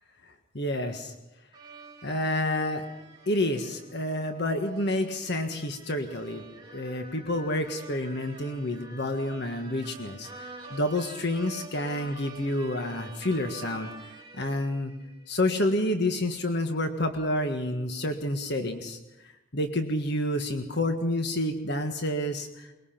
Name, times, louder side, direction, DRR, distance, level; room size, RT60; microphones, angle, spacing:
voice 1, 0.2-1.1 2.0-2.9 3.3-6.4 6.7-13.9 14.3-14.9 15.3-22.7, left 1 dB, 55° left, 5 dB, 1.6 m, -29 dB
sound 1, 1.5-15.2, right 3 dB, 25° right, 3.5 m, -47 dB
23.0 x 21.0 x 5.9 m, 0.98 s
head